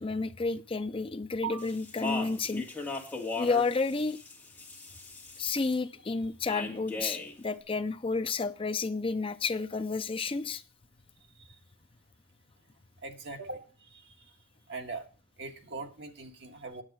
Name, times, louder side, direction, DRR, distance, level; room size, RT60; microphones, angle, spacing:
voice 1, 0.0-2.6 3.4-4.2 5.4-10.6, left 4 dB, 25° left, 0.5 m, -31 dB
Speech, 1.6-5.7 6.5-7.3, left 3 dB, 10° left, 2.5 m, -38 dB
voice 2, 13.0-14.1 14.7-15.1 15.4-16.8, right 4 dB, 60° right, 1.7 m, -40 dB
9.7 x 8.3 x 6.1 m
head